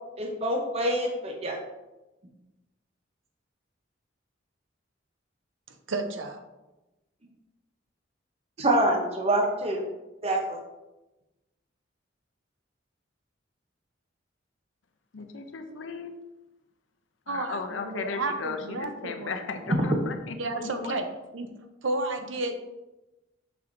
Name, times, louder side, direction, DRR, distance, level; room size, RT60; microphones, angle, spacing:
voice 1, 0.2-1.6 8.6-9.8 10.2-10.6, right 1 dB, 35° right, 1 dB, 0.8 m, -26 dB
voice 2, 5.9-6.4 17.3-19.4 20.4-21.0 21.3-21.5 21.8-22.6, right 2 dB, 80° right, 7 dB, 0.7 m, -31 dB
voice 3, 15.1-16.1 17.3-21.0, left 4 dB, 80° left, 6 dB, 0.6 m, -36 dB
6.3 x 5.7 x 2.6 m, 1.0 s
head